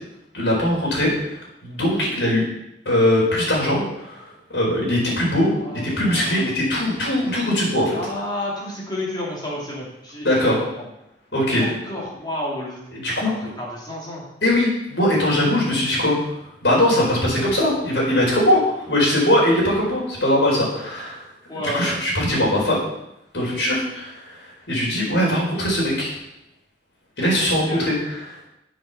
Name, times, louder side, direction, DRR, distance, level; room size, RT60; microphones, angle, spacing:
voice 1, 0.3-1.1 1.6-2.4 2.8-4.2 4.5-5.5 5.8-8.0 10.2-10.6 11.3-11.7 12.9-13.3 14.4-16.3 16.6-21.2 21.5-22.8 23.3-24.4 24.7-26.1 27.2-28.5, left 1 dB, 85° left, -4 dB, 4.5 m, -20 dB
voice 2, 5.5-6.6 7.9-10.9 11.6-12.8 13.2-14.2 21.5-21.9 27.6-27.9, left 1 dB, 25° left, -4 dB, 3.0 m, -31 dB
7.8 x 6.7 x 6.7 m, 0.85 s
head